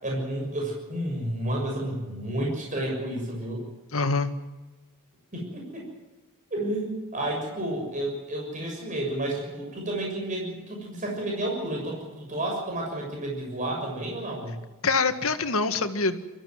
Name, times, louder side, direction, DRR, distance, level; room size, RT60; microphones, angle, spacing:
voice 1, 0.0-3.6 5.3-5.8 6.5-14.6, right 1 dB, 35° right, 0 dB, 6.7 m, -31 dB
voice 2, 3.9-4.3 14.8-16.3, left 4 dB, 70° left, 8 dB, 1.7 m, -25 dB
24.0 x 14.5 x 9.6 m, 1.2 s
head